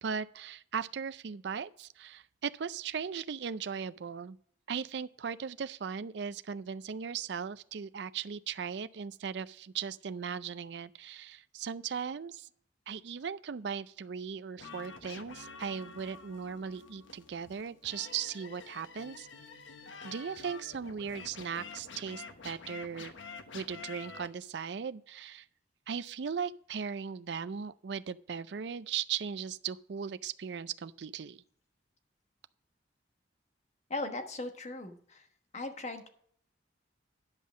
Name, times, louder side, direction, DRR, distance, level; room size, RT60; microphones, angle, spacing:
voice 1, 0.0-4.4 4.7-12.5 12.9-19.3 20.0-23.1 23.5-25.5 25.9-31.4, right 7 dB, 60° right, 0.4 m, -38 dB
sound 1, 14.6-24.3, left 4 dB, 85° left, 1.0 m, -48 dB
voice 2, 33.9-35.3 35.5-36.1, left 2 dB, 35° left, 1.2 m, -38 dB
10.5 x 5.5 x 6.1 m
head